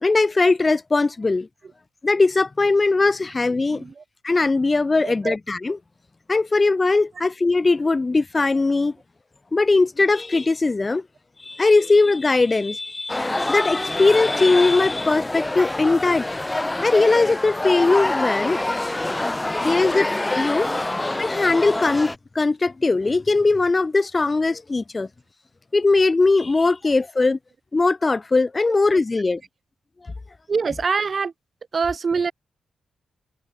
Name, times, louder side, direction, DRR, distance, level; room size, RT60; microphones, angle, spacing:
voice 1, 0.0-1.5 2.0-3.8 4.2-5.8 6.3-9.0 9.5-11.0 11.4-16.3 16.8-18.6 19.1-25.1 25.7-27.4 27.7-29.4 30.0-30.1, left 3 dB, 30° left, 0.8 m, -20 dB
voice 2, 3.7-4.0 5.0-5.4 7.2-7.3 18.5-18.6 20.6-20.8 30.5-31.3 31.7-32.3, right 5 dB, 50° right, 6.3 m, -25 dB
sound 1, 13.1-22.1, left 2 dB, 15° left, 1.9 m, -26 dB
cardioid pair, 55°, 0 cm